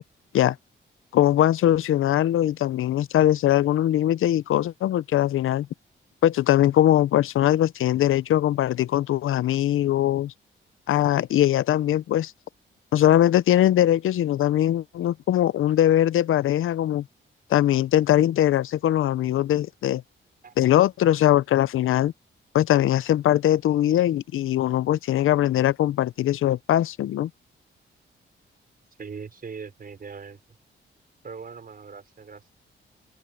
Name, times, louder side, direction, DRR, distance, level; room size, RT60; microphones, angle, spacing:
voice 1, 1.1-5.7 6.2-10.3 10.9-12.3 12.9-17.0 17.5-20.0 20.6-22.1 22.5-27.3, left 12 dB, 80° left, 0.5 m, -21 dB
voice 2, 29.0-30.4 31.2-32.5, right 5 dB, 45° right, 5.3 m, -40 dB
open air
cardioid pair, 110°, 21 cm